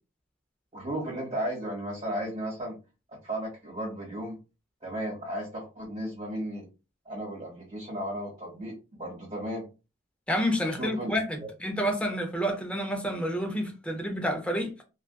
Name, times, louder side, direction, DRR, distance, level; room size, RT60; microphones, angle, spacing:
voice 1, 0.7-2.8 3.1-4.4 4.8-6.6 7.0-9.7 10.8-11.2, right 1 dB, 30° right, 1.3 m, -35 dB
voice 2, 10.3-14.7, equal, 5° left, 0.5 m, -29 dB
2.6 x 2.3 x 2.2 m
head